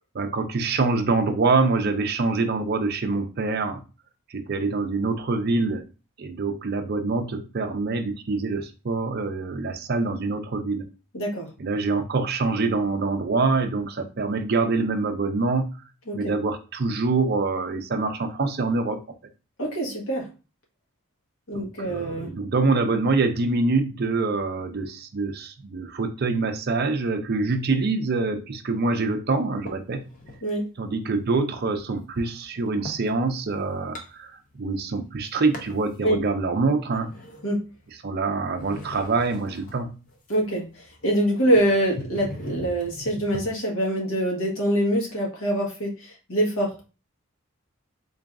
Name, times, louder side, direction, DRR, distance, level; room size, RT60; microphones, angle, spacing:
voice 1, 0.1-3.8 4.3-5.8 6.2-10.9 11.6-15.7 16.1-19.0 21.5-30.0 30.8-37.1 38.0-39.9, right 3 dB, 45° right, 7 dB, 0.5 m, -25 dB
voice 2, 11.1-11.5 16.1-16.3 19.6-20.3 21.5-22.3 30.4-30.6 36.0-36.2 37.4-37.6 40.3-46.7, right 1 dB, 75° left, -2 dB, 1.4 m, -25 dB
sound 1, 29.7-30.6 31.1-33.1 33.6-34.8 35.1-35.9 36.4-38.1 38.5-43.5, left 1 dB, 35° left, 0.6 m, -41 dB
3.9 x 2.4 x 3.5 m, 0.32 s
head